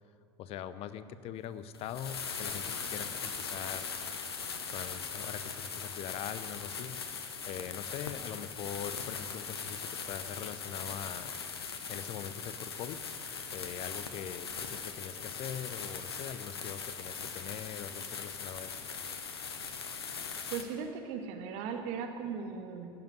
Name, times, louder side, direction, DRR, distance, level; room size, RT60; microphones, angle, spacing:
voice 1, 0.4-3.9 4.7-7.2 7.5-11.3 11.9-13.0 13.5-18.7, left 10 dB, 50° left, 13 dB, 0.8 m, -42 dB
sound 1, 1.7-20.6, left 5 dB, 80° left, 1.0 m, -40 dB
voice 2, 20.5-22.9, right 6 dB, 60° right, 4 dB, 1.6 m, -38 dB
15.5 x 7.8 x 9.6 m, 2.5 s
figure-of-eight pair, 65°, 13 cm